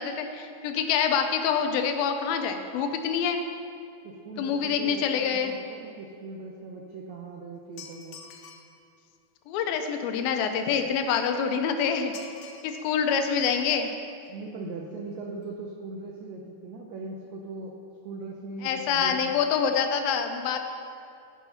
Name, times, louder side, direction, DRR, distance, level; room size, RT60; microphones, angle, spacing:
voice 1, 0.0-3.4 4.4-5.5 9.5-12.1 12.6-13.9 18.6-20.6, left 7 dB, 90° left, 6 dB, 2.5 m, -26 dB
voice 2, 4.0-8.2 14.3-19.3, right 3 dB, 85° right, 0 dB, 1.5 m, -40 dB
sound 1, 7.8-8.8 12.1-12.9 13.2-13.3 14.2-14.3 14.6-14.7 15.0-15.2 15.4-15.5, left 6 dB, 70° left, 1.8 m, -47 dB
13.5 x 4.8 x 5.7 m, 2.5 s
omnidirectional pair, 4.1 m